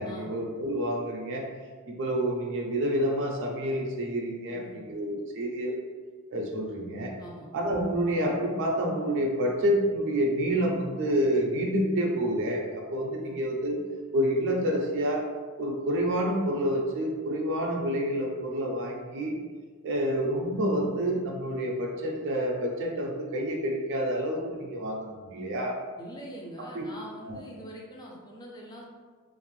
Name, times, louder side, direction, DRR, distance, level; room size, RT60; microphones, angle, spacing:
voice 1, 0.0-1.4 1.9-5.8 6.3-7.1 7.5-13.8 14.1-15.2 15.6-19.3 19.8-25.7 26.7-26.8 27.2-27.4, equal, 55° right, 0 dB, 0.4 m, -28 dB
voice 2, 4.5-4.8 7.2-7.5 13.2-13.3 26.0-28.8, equal, 20° left, -2 dB, 0.4 m, -44 dB
2.5 x 2.0 x 3.1 m, 1.5 s
head